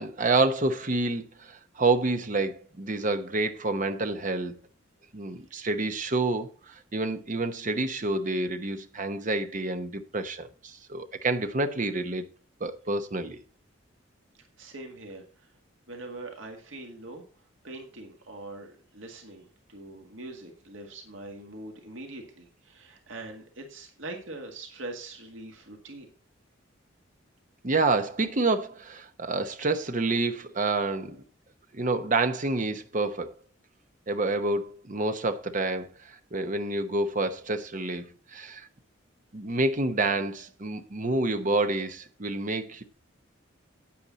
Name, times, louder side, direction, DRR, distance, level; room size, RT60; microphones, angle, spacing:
voice 1, 0.0-4.6 5.1-12.2 12.6-13.4 27.6-31.2 31.7-33.3 34.1-38.7 39.3-42.8, right 2 dB, 40° right, 0.9 m, -28 dB
voice 2, 14.4-15.6 15.9-17.2 17.6-26.1, right 2 dB, 75° right, 1.9 m, -43 dB
8.9 x 8.6 x 4.0 m
head